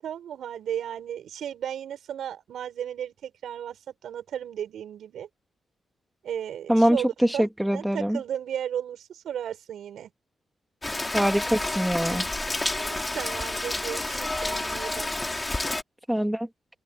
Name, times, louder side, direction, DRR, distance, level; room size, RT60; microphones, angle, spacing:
voice 1, 0.0-5.3 6.2-10.1 12.0-15.1, right 9 dB, 85° right, 7.1 m, -35 dB
voice 2, 6.7-8.2 11.1-12.2 16.1-16.5, equal, 5° right, 2.7 m, -23 dB
Rain, 10.8-15.8, left 2 dB, 15° left, 4.2 m, -29 dB
open air
cardioid pair, 100°, 0 cm